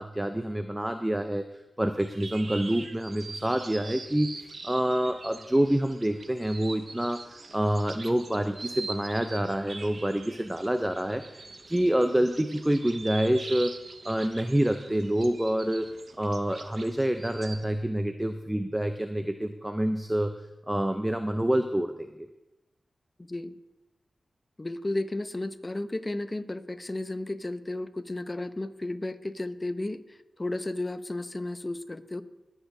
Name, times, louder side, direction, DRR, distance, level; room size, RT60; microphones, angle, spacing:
voice 1, 0.0-1.4 1.8-13.7 14.0-15.9 16.2-20.3 20.7-22.3, right 1 dB, 15° right, 7 dB, 0.6 m, -27 dB
sound 1, 2.0-17.7, right 3 dB, 60° right, 0.7 m, -43 dB
voice 2, 24.6-30.0 30.4-32.2, left 2 dB, 30° left, 10 dB, 0.8 m, -33 dB
21.5 x 8.1 x 2.8 m, 1.0 s
cardioid pair, 50°, 0 cm